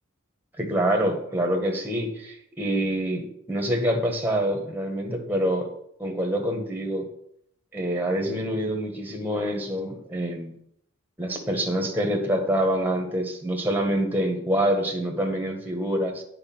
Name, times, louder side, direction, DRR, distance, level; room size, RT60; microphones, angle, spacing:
voice 1, 0.6-5.7 6.0-7.0 7.7-10.5 11.2-16.2, right 1 dB, 10° right, 3 dB, 1.3 m, -26 dB
9.0 x 4.8 x 6.0 m, 0.71 s
head